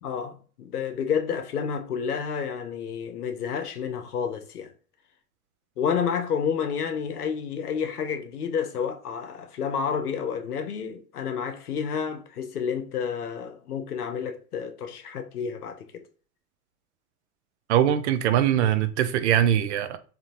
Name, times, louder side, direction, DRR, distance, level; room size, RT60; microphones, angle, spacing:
voice 1, 0.0-4.7 5.8-16.0, left 7 dB, 75° left, 0.7 m, -30 dB
voice 2, 17.7-20.0, right 10 dB, 50° right, 0.5 m, -22 dB
3.9 x 2.7 x 2.6 m
figure-of-eight pair, 95°, 45 cm